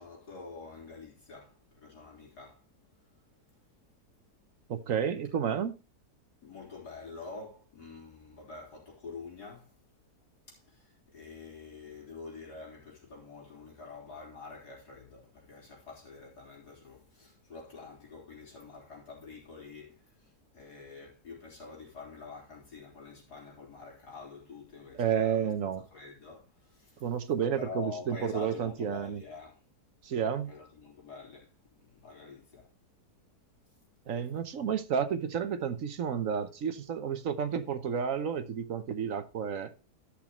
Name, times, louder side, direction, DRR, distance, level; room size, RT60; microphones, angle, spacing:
voice 1, 0.0-2.7 3.6-3.8 6.4-9.7 10.5-25.5 25.8-27.1 27.6-29.6 30.5-32.7, left 4 dB, 90° left, 4.2 m, -47 dB
voice 2, 4.7-5.7 24.9-25.8 27.0-29.2 30.0-30.5 34.1-39.7, right 7 dB, 60° right, 1.2 m, -31 dB
14.0 x 6.4 x 2.9 m
omnidirectional pair, 1.7 m